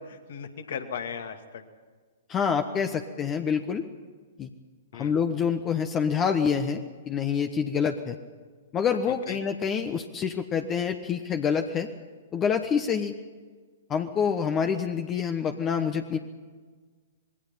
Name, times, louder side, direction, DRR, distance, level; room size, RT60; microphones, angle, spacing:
voice 1, 0.0-1.6 4.9-5.2 9.1-9.4, left 7 dB, 55° left, 7 dB, 2.3 m, -37 dB
voice 2, 2.3-3.8 4.4-4.5 4.9-8.2 8.7-11.9 12.3-13.1 13.9-16.2, left 7 dB, 20° left, 7 dB, 1.2 m, -27 dB
26.0 x 21.5 x 5.7 m, 1.5 s
figure-of-eight pair, 110°, 0 cm